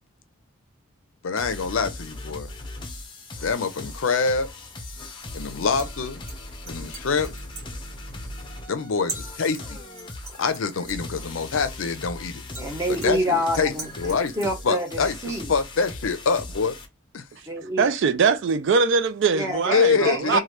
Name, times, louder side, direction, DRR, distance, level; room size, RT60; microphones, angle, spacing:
voice 1, 1.2-2.5 3.4-4.5 5.3-6.2 6.7-7.4 8.7-9.8 10.4-12.4 13.0-13.7 14.0-14.3 14.6-15.2 15.5-16.7 17.1-17.2 19.7-20.4, left 5 dB, 65° left, 0.5 m, -25 dB
sound 1, 1.4-16.9, left 2 dB, 20° left, 0.6 m, -39 dB
sound 2, 3.6-15.3, right 3 dB, 35° right, 1.3 m, -45 dB
voice 2, 12.6-15.5 17.5-17.9 19.3-20.4, equal, 15° right, 0.9 m, -27 dB
voice 3, 17.8-20.4, right 5 dB, 55° right, 0.4 m, -22 dB
3.2 x 2.2 x 2.9 m
head